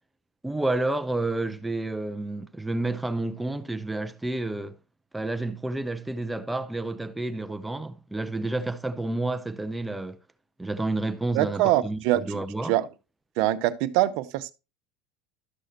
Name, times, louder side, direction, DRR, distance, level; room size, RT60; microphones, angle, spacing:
voice 1, 0.4-4.8 5.1-10.2 10.6-12.7, right 2 dB, 10° right, 0.6 m, -30 dB
voice 2, 11.3-12.4 12.7-12.9 13.4-14.5, right 15 dB, 65° right, 0.7 m, -24 dB
12.0 x 6.3 x 2.9 m
hypercardioid pair, 80°, 0 cm